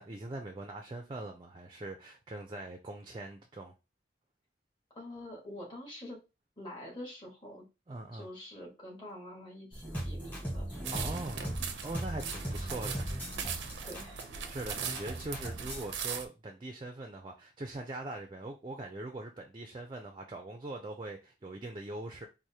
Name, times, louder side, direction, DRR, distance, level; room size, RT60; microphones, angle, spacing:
voice 1, 0.0-3.7 7.9-8.3 10.9-13.3 14.5-22.3, right 2 dB, 25° right, 0.4 m, -42 dB
voice 2, 4.9-6.2 6.6-7.7 8.1-11.1 13.4-14.3, left 1 dB, 25° left, 1.3 m, -46 dB
sound 1, 9.7-15.9, right 1 dB, 10° left, 1.2 m, -39 dB
sound 2, 10.8-16.3, right 7 dB, 85° right, 0.5 m, -40 dB
4.6 x 2.1 x 2.7 m
head